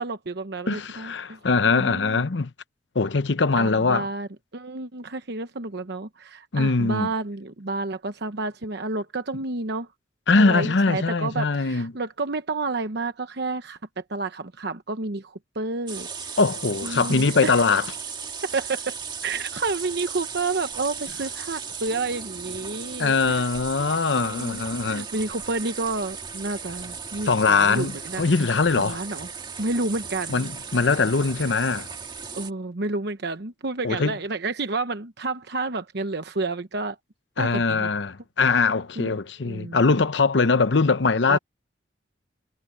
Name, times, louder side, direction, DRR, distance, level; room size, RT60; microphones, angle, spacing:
voice 1, 0.0-1.4 1.7-2.2 3.6-9.9 10.4-13.8 14.1-16.1 16.8-17.5 18.4-19.0 19.2-23.4 24.2-28.2 28.8-29.3 29.6-30.5 32.3-37.0 37.4-37.9 39.0-39.8 41.3-41.4, right 3 dB, 65° right, 1.0 m, -30 dB
voice 2, 0.7-2.5 2.9-4.1 6.5-7.1 10.3-11.9 16.4-17.9 23.0-25.1 27.2-29.0 30.3-31.9 33.8-34.2 37.4-41.4, left 4 dB, 70° left, 0.8 m, -22 dB
sound 1, 15.9-32.5, right 6 dB, 25° right, 1.9 m, -36 dB
head